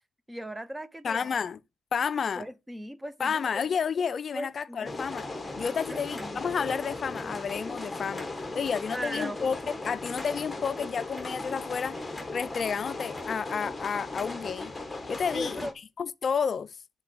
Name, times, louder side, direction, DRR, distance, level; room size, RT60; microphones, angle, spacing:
voice 1, 0.3-1.3 2.3-3.7 4.3-5.0 5.9-6.4 8.9-9.4 15.3-15.7, equal, 10° right, 0.7 m, -38 dB
voice 2, 1.0-1.6 1.9-2.4 3.2-5.3 5.6-8.3 8.5-9.6 9.8-12.0 12.3-14.7 15.1-15.6 16.0-16.8, left 6 dB, 45° left, 0.4 m, -30 dB
sound 1, 4.8-15.7, left 2 dB, 15° left, 1.4 m, -37 dB
7.3 x 3.8 x 6.0 m
cardioid pair, 90°, 0 cm